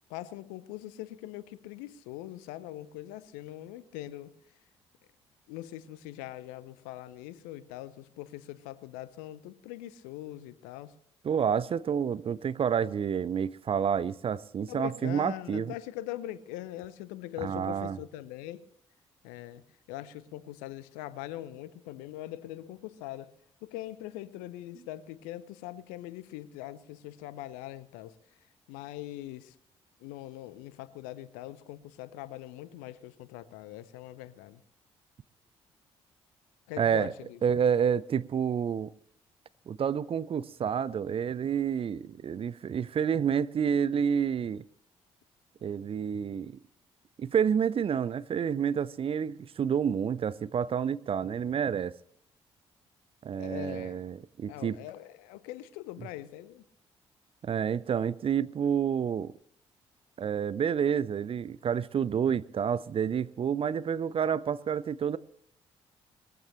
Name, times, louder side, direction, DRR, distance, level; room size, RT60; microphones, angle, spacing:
voice 1, 0.1-4.3 5.5-10.9 14.7-18.6 19.2-19.6 19.9-23.3 23.6-28.1 28.7-29.5 30.0-34.6 36.7-37.4 53.4-54.2 54.5-56.6, left 14 dB, 70° left, 0.8 m, -42 dB
voice 2, 11.2-15.7 17.4-18.0 36.8-37.1 37.4-38.9 39.7-44.6 45.6-46.5 47.2-52.0 53.2-54.8 57.4-59.3 60.2-65.2, right 7 dB, 40° right, 0.6 m, -29 dB
20.0 x 15.0 x 3.1 m
figure-of-eight pair, 40°, 14 cm